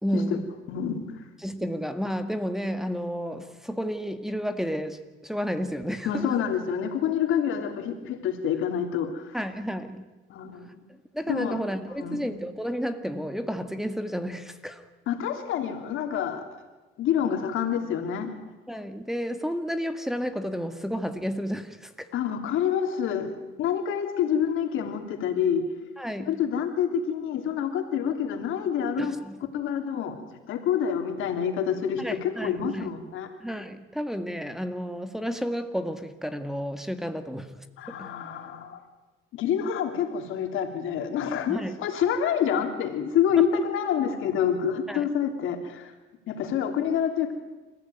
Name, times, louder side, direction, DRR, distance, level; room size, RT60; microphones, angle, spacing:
voice 1, 0.0-0.5 1.4-6.4 9.3-10.0 11.1-14.8 18.7-22.1 26.0-26.4 29.0-29.3 32.0-32.9 33.4-37.5 38.0-38.1 41.5-41.7 44.9-45.1, equal, ahead, 6 dB, 1.9 m, -31 dB
voice 2, 0.7-1.0 6.0-9.3 10.3-10.7 11.3-11.6 12.0-12.3 15.1-16.4 17.0-18.3 22.1-23.3 23.6-25.6 26.3-29.1 29.5-33.3 37.8-38.8 39.3-45.9 46.3-47.3, left 8 dB, 85° left, 5 dB, 3.2 m, -27 dB
27.5 x 15.0 x 9.3 m, 1.2 s
cardioid pair, 90°, 20 cm